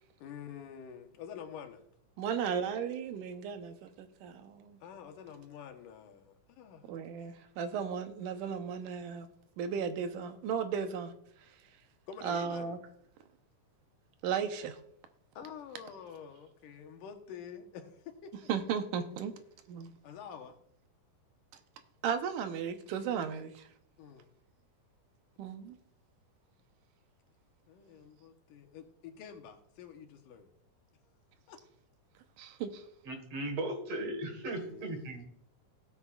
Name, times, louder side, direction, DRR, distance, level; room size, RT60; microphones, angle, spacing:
voice 1, 0.2-1.8 4.8-6.9 12.1-12.8 15.4-18.5 20.0-20.6 23.4-23.5 24.0-24.3 27.7-30.5 31.5-31.6 34.5-35.3, left 7 dB, 85° left, 2.7 m, -48 dB
voice 2, 2.2-4.8 6.9-9.3 9.6-11.1 12.2-12.8 14.2-14.8 18.5-19.3 19.7-19.9 22.0-23.7 25.4-25.8 32.4-32.8, right 7 dB, 85° right, 2.4 m, -35 dB
voice 3, 33.1-35.3, right 1 dB, 55° right, 2.5 m, -37 dB
17.5 x 8.3 x 2.4 m
omnidirectional pair, 3.6 m